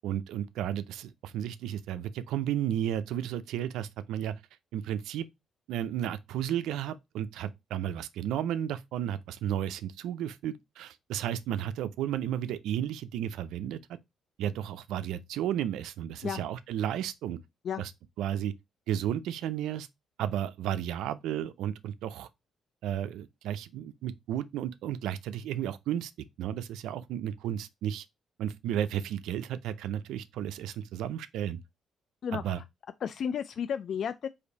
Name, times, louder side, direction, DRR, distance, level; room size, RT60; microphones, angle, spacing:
voice 1, 0.0-4.3 4.7-5.3 5.7-13.8 14.4-17.4 17.8-17.9 18.2-18.5 18.9-19.9 20.2-22.3 22.8-26.1 26.4-28.0 28.4-31.6 32.3-32.6, right 10 dB, 85° right, 0.5 m, -33 dB
voice 2, 32.2-32.6 33.0-34.3, left 7 dB, 60° left, 0.4 m, -33 dB
5.0 x 2.6 x 4.0 m
cardioid pair, 90°, 0 cm